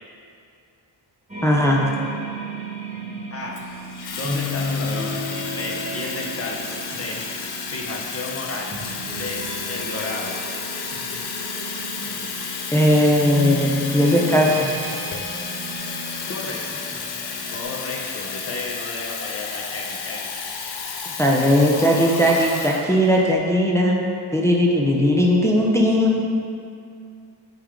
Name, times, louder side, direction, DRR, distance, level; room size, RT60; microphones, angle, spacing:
sound 1, 1.3-17.6, right 1 dB, 15° right, 1.0 m, -33 dB
voice 1, 1.4-1.8 12.7-14.7 21.2-26.2, equal, 5° left, -3 dB, 0.6 m, -18 dB
Water tap faucet / Fill (with liquid), 3.5-23.3, left 5 dB, 65° left, 0.7 m, -32 dB
voice 2, 4.1-5.2 5.5-7.2 7.7-8.8 9.2-10.3 16.3-16.8 17.5-20.3, left 2 dB, 35° left, 0 dB, 0.9 m, -32 dB
8.0 x 3.4 x 3.7 m, 2.4 s
wide cardioid pair, 115°, 42 cm